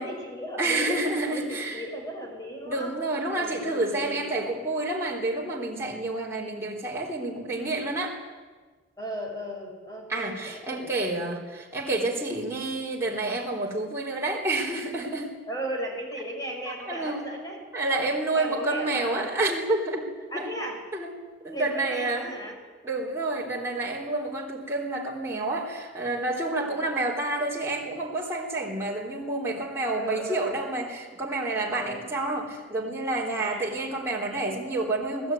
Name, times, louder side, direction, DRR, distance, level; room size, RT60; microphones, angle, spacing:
voice 1, 0.0-1.0 1.3-2.9 3.3-4.4 9.0-11.3 15.5-17.6 17.9-19.3 20.3-20.8 21.5-22.6 26.6-26.8 29.9-30.6 31.7-32.0 33.4-33.7, equal, 20° left, 1 dB, 6.2 m, -36 dB
voice 2, 0.6-1.9 2.7-8.2 10.1-15.3 16.9-17.2 17.7-20.1 20.3-20.6 20.9-21.2 21.4-22.3 22.8-35.3, right 2 dB, 15° right, -3 dB, 3.8 m, -29 dB
25.0 x 18.5 x 9.3 m, 1.4 s
head